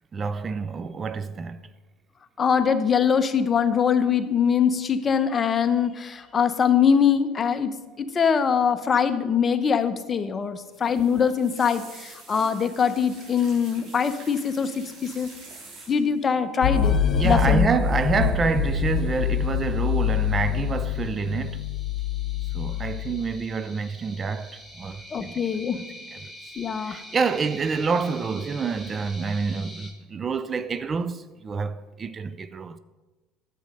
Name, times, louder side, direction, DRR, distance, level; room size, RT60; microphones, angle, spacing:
voice 1, 0.1-1.6 17.1-21.6 22.5-25.4 25.8-26.3 26.8-32.8, right 5 dB, 30° right, 0.5 m, -27 dB
voice 2, 2.4-15.3 15.9-17.7 25.1-25.8 26.6-27.0, left 7 dB, 35° left, 0.8 m, -23 dB
sound 1, 10.7-16.2 17.2-17.5 17.8-18.1 19.3-19.9 20.2-20.8 21.2-21.6 22.0-22.1, right 3 dB, 55° right, 4.2 m, -47 dB
sound 2, 16.6-23.4, left 8 dB, 75° left, 1.0 m, -25 dB
sound 3, 17.7-29.9, equal, 10° right, 2.0 m, -46 dB
10.0 x 7.7 x 5.4 m
hypercardioid pair, 80°, 0 cm